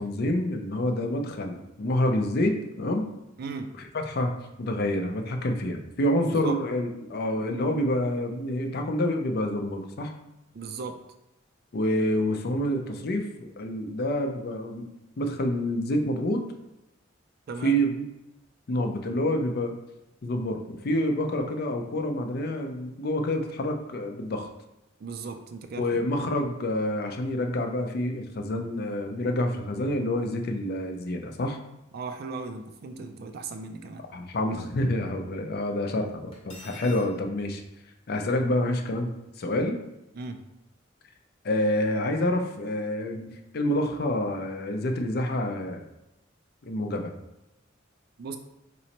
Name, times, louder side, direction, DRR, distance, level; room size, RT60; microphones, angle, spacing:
voice 1, 0.0-3.1 3.8-4.3 4.6-10.1 11.7-14.9 15.2-16.5 17.6-18.0 18.7-19.8 20.2-24.5 25.8-31.6 34.1-37.6 38.1-39.8 41.4-45.9 46.6-47.1, left 1 dB, 55° left, 4 dB, 0.5 m, -28 dB
voice 2, 3.4-3.8 6.3-6.6 10.5-11.0 17.5-17.8 25.0-26.0 31.9-34.0 40.1-40.4 48.2-48.4, right 4 dB, 55° right, 7 dB, 0.4 m, -37 dB
Cutlery silverware, 36.3-37.1, left 2 dB, 30° left, 0.9 m, -46 dB
4.0 x 3.1 x 2.9 m, 0.92 s
head